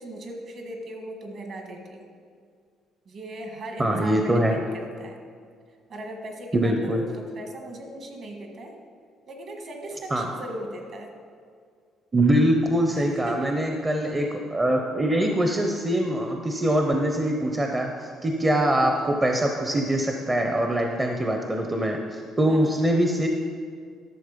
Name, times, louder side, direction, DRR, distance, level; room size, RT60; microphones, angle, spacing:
voice 1, 0.0-2.1 3.0-5.2 5.9-8.7 9.3-11.1 12.9-13.5 22.5-22.7, right 1 dB, 50° right, 2 dB, 1.7 m, -38 dB
voice 2, 3.8-4.6 6.5-7.0 10.1-10.3 12.1-23.3, right 1 dB, 20° right, 2 dB, 0.7 m, -23 dB
11.5 x 7.2 x 5.1 m, 2.1 s
cardioid pair, 145°, 0 cm